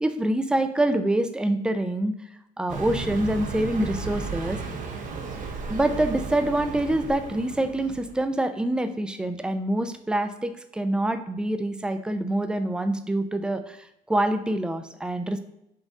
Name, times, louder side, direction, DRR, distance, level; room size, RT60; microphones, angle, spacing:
voice 1, 0.0-2.1 2.6-4.6 5.7-13.8 14.1-15.4, right 1 dB, 5° right, 9 dB, 0.3 m, -25 dB
Car passing by, 2.7-8.2, right 4 dB, 50° right, 0.7 m, -34 dB
5.2 x 2.5 x 3.6 m, 0.81 s
cardioid pair, 110°, 17 cm